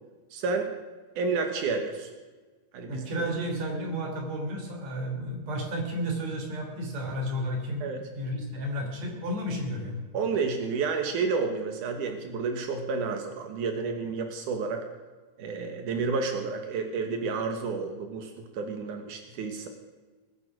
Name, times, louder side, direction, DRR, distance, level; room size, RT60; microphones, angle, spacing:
voice 1, 0.3-0.7 1.2-2.1 2.7-3.1 7.8-8.0 10.1-14.8 15.4-19.7, right 4 dB, 90° right, 5 dB, 1.7 m, -30 dB
voice 2, 2.9-7.9 8.1-9.9, equal, 40° right, 1 dB, 4.0 m, -32 dB
20.5 x 9.6 x 6.1 m, 1.3 s
omnidirectional pair, 5.7 m